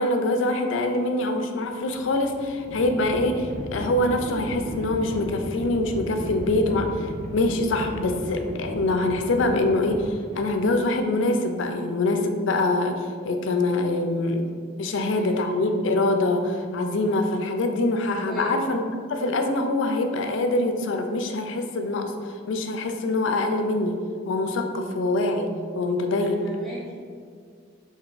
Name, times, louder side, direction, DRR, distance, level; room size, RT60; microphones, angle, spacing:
voice 1, 0.0-14.5 14.8-18.8 19.1-24.0 24.3-26.4, left 2 dB, 70° left, 5 dB, 0.4 m, -24 dB
Livestock farm animals working animals, 1.9-10.9, equal, 35° right, 0.7 m, -35 dB
voice 2, 14.9-15.5 18.3-18.5 26.2-27.0, right 1 dB, ahead, -10 dB, 0.6 m, -38 dB
3.4 x 2.7 x 3.8 m, 2.1 s
head